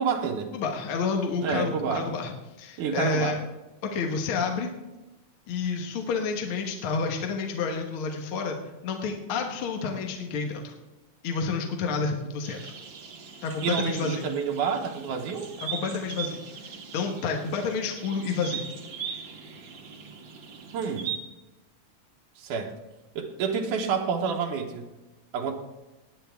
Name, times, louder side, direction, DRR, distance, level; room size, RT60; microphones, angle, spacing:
voice 1, 0.0-0.5 1.4-2.1 2.8-3.3 13.6-15.5 20.7-21.1 22.4-22.7 23.2-24.9 25.3-25.5, right 6 dB, 80° right, 2 dB, 2.4 m, -28 dB
voice 2, 0.5-2.3 2.6-3.4 3.9-4.7 5.5-8.6 8.8-10.7 11.2-12.7 13.4-14.2 15.6-16.4 16.9-18.6, left 5 dB, 55° left, 2 dB, 1.6 m, -29 dB
sound 1, 12.4-21.2, right 7 dB, 55° right, 1.4 m, -39 dB
18.0 x 9.6 x 3.5 m, 1.1 s
omnidirectional pair, 3.5 m